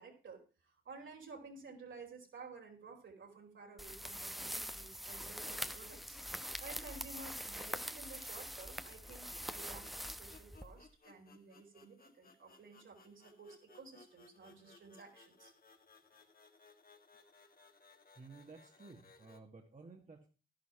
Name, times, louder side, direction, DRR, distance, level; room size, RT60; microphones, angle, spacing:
voice 1, 0.0-15.5, right 4 dB, 70° right, 1 dB, 4.5 m, -54 dB
sound 1, 3.8-10.9, equal, ahead, 1.0 m, -44 dB
sound 2, 5.1-19.4, left 4 dB, 45° left, 2.0 m, -64 dB
voice 2, 18.2-20.3, right 4 dB, 40° right, 2 dB, 2.0 m, -55 dB
11.5 x 11.0 x 4.5 m, 0.34 s
supercardioid pair, 50°, 20 cm